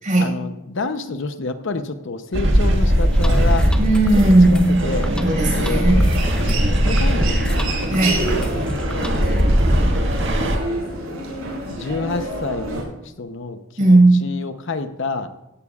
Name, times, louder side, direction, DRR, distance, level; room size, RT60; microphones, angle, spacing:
voice 1, 0.2-3.7 4.1-5.1 5.5-7.8 8.2-8.5 8.8-9.5 9.9-10.6 11.7-12.8 13.2-15.3, left 3 dB, 60° left, 9 dB, 0.8 m, -29 dB
sound 1, 2.3-10.6, equal, 55° right, 1.7 m, -19 dB
sound 2, 3.1-9.4, equal, 5° left, 0.7 m, -33 dB
voice 2, 3.7-4.8 5.2-6.0 7.9-8.2 13.8-14.2, right 2 dB, 40° right, -1 dB, 5.6 m, -15 dB
Human voice, 4.8-12.8, right 2 dB, 85° right, 5.4 m, -29 dB
17.0 x 15.5 x 2.4 m, 0.95 s
head